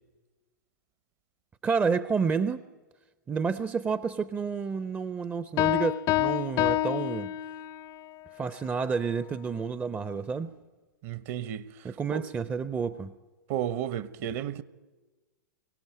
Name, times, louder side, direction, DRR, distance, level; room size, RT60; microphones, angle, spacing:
voice 1, 1.6-2.6 3.3-7.3 8.4-10.5 11.8-13.1, right 5 dB, 15° right, 0.7 m, -30 dB
Piano, 5.6-7.9, left 14 dB, 35° left, 0.6 m, -27 dB
voice 2, 11.0-11.6 12.1-12.2 13.5-14.6, right 11 dB, 45° right, 1.1 m, -32 dB
23.5 x 17.0 x 9.3 m
figure-of-eight pair, 110°, 11 cm